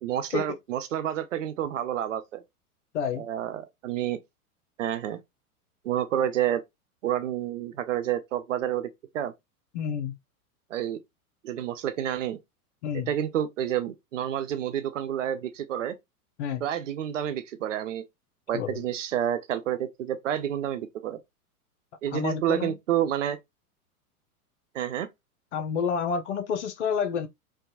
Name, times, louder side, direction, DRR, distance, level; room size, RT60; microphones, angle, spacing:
voice 1, 0.0-2.4 3.2-4.2 4.8-5.2 5.8-6.6 7.0-9.3 10.7-11.0 11.4-12.4 12.9-16.0 16.6-18.0 18.5-21.2 22.0-23.4 24.7-25.1, right 11 dB, 55° right, 0.5 m, -29 dB
voice 2, 2.9-3.2 9.7-10.1 12.8-13.1 16.4-16.6 18.5-18.8 22.1-22.8 25.5-27.3, left 7 dB, 50° left, 0.6 m, -29 dB
2.6 x 2.2 x 2.6 m
figure-of-eight pair, 100°, 45 cm